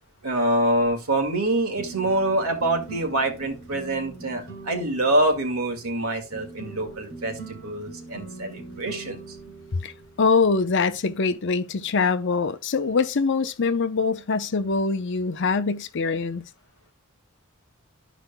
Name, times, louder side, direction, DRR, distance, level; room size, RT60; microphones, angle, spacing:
voice 1, 0.2-9.4, right 1 dB, 85° right, 1.9 m, -25 dB
sound 1, 1.7-11.0, right 3 dB, 50° right, 2.2 m, -42 dB
voice 2, 10.2-16.4, left 4 dB, 55° left, 0.6 m, -23 dB
13.0 x 5.0 x 2.2 m
head